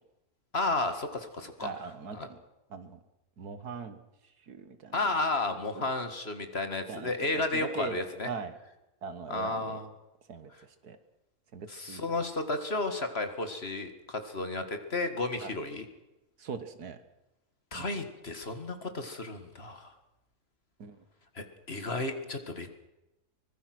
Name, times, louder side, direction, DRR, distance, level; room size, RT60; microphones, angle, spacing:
voice 1, 0.5-1.7 2.1-2.3 4.9-8.3 9.3-9.9 11.7-15.9 17.7-19.9 21.4-22.7, left 2 dB, 40° left, 7 dB, 2.2 m, -33 dB
voice 2, 1.6-2.4 2.7-3.0 3.4-4.0 4.5-5.0 5.8-5.9 6.9-8.5 9.0-9.8 10.3-11.0 11.5-12.3 15.4-15.5 16.4-17.0 17.7-18.1 20.8-21.0, right 5 dB, 75° right, 10 dB, 2.0 m, -41 dB
24.0 x 21.0 x 6.2 m, 0.96 s
omnidirectional pair, 1.7 m